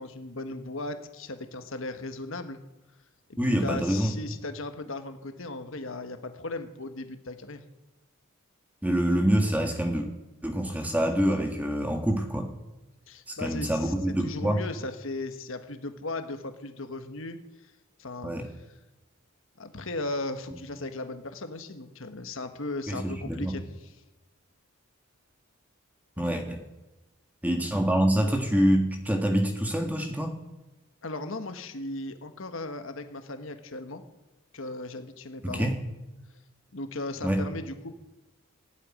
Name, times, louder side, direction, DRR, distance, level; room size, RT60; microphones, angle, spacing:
voice 1, 0.0-2.6 3.6-7.6 13.1-17.7 18.0-18.3 19.6-23.9 26.2-26.4 31.0-34.0 34.5-35.7 36.7-37.9, left 2 dB, 65° left, 8 dB, 1.3 m, -37 dB
voice 2, 3.4-4.1 8.8-10.1 10.4-12.5 13.3-14.6 18.2-18.5 22.9-23.6 26.2-26.6 27.4-30.4 35.4-35.8 37.2-37.5, equal, 5° right, 4 dB, 1.6 m, -26 dB
16.0 x 8.2 x 10.0 m, 1.0 s
head